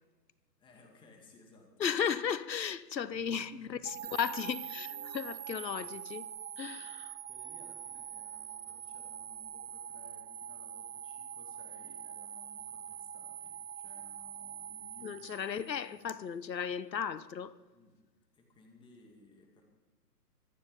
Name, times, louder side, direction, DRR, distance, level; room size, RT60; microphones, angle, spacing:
voice 1, 0.6-2.1 3.0-4.3 6.6-6.8 7.2-16.1 17.7-18.0 18.3-19.6, left 3 dB, 10° left, 2.2 m, -60 dB
voice 2, 1.8-6.3 6.6-7.2 15.0-17.5, left 7 dB, 90° left, 1.0 m, -35 dB
sound 1, 3.1-5.3, right 5 dB, 25° right, 6.4 m, -61 dB
sound 2, 3.8-16.0, right 10 dB, 55° right, 0.7 m, -44 dB
25.0 x 9.6 x 5.3 m
hypercardioid pair, 150°, 49 cm